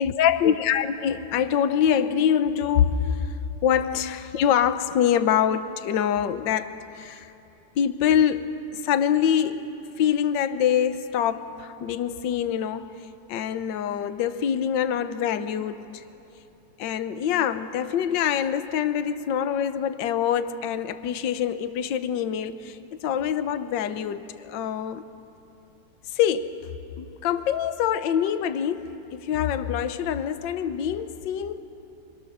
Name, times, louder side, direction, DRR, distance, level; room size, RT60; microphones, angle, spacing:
voice 1, 0.0-3.3 3.6-7.3 7.8-9.7 10.0-12.9 13.3-16.0 16.8-25.0 26.1-26.6 27.0-31.6, left 9 dB, 65° left, 1.5 m, -25 dB
27.5 x 26.0 x 6.7 m
omnidirectional pair, 2.3 m